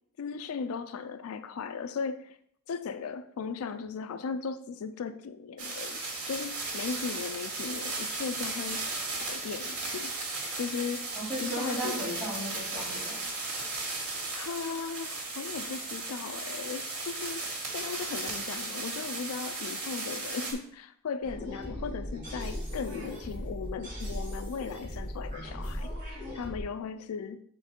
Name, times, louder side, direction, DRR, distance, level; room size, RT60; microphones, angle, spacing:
voice 1, 0.2-2.4 2.7-8.8 9.2-10.1 10.5-11.1 11.4-12.1 14.0-17.4 17.7-27.4, left 5 dB, 85° left, 0.4 m, -37 dB
sound 1, 5.6-20.5, right 3 dB, 90° right, 2.2 m, -36 dB
voice 2, 11.2-13.2, right 1 dB, 5° left, 3.0 m, -35 dB
sound 2, 21.2-26.6, equal, 40° right, 2.7 m, -38 dB
6.0 x 4.6 x 4.3 m
head